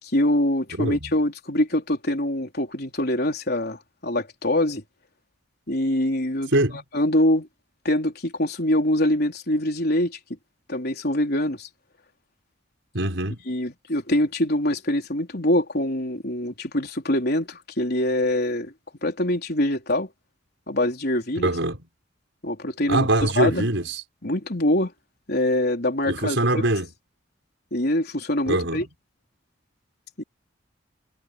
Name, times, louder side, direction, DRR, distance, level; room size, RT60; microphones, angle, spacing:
voice 1, 0.0-4.8 5.7-6.5 6.9-7.5 7.8-10.2 10.7-11.7 13.5-18.7 19.0-20.1 20.7-21.5 22.4-23.1 23.4-23.7 24.2-24.9 25.3-26.7 27.7-28.9 30.2-30.3, left 1 dB, 55° left, 4.2 m, -24 dB
voice 2, 0.8-1.1 6.5-6.8 12.9-13.4 21.4-21.8 22.9-24.0 26.1-26.9 28.5-28.8, right 1 dB, 70° right, 5.4 m, -23 dB
head